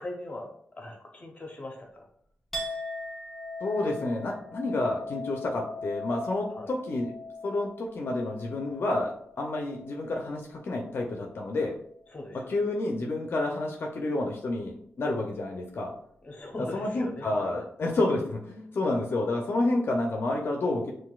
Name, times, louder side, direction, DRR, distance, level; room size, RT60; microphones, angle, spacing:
voice 1, 0.0-2.0 6.5-6.7 12.1-12.6 16.2-17.6, left 2 dB, 30° left, 2 dB, 0.8 m, -41 dB
Chink clink, 2.5-10.2 10.5-11.2, left 2 dB, ahead, 1.1 m, -40 dB
voice 2, 3.6-7.1 7.4-11.7 12.3-15.9 16.7-20.9, left 2 dB, 60° left, 1 dB, 0.5 m, -29 dB
5.8 x 2.5 x 2.3 m, 0.69 s
wide cardioid pair, 125°, 4 cm